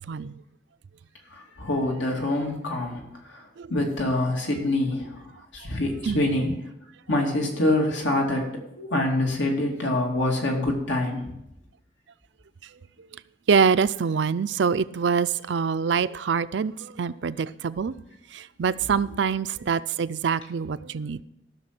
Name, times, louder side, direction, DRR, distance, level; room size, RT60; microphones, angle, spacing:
voice 1, 1.3-3.4 3.7-6.5 7.1-8.5 8.8-11.3 18.7-18.8, left 1 dB, 85° left, 2.6 m, -26 dB
voice 2, 13.5-17.9 18.3-21.2, right 6 dB, 75° right, 0.4 m, -25 dB
14.5 x 6.5 x 6.0 m
head